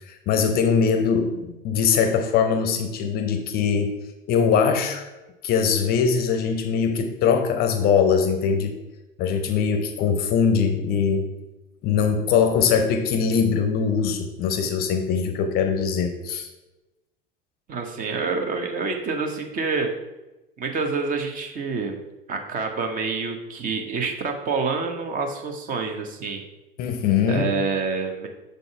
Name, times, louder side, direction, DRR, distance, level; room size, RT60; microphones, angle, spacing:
voice 1, 0.1-3.9 4.3-5.1 5.4-8.8 9.2-11.3 11.8-16.5 26.8-27.4, left 6 dB, 30° left, 7 dB, 0.7 m, -22 dB
voice 2, 17.7-19.9 20.6-22.0 22.3-26.4 27.3-28.3, right 4 dB, 30° right, 4 dB, 1.0 m, -27 dB
6.6 x 4.0 x 4.7 m, 1.0 s
figure-of-eight pair, 80°, 29 cm